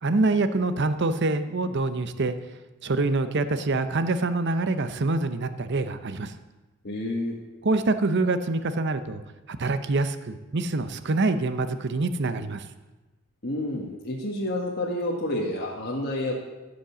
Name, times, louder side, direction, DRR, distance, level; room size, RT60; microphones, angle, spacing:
voice 1, 0.0-2.4 2.8-6.3 7.6-9.2 9.5-12.6, right 3 dB, 55° right, 11 dB, 0.7 m, -25 dB
voice 2, 6.8-7.3 13.4-16.3, left 1 dB, 50° left, -3 dB, 1.5 m, -29 dB
15.0 x 5.3 x 7.1 m, 1.2 s
head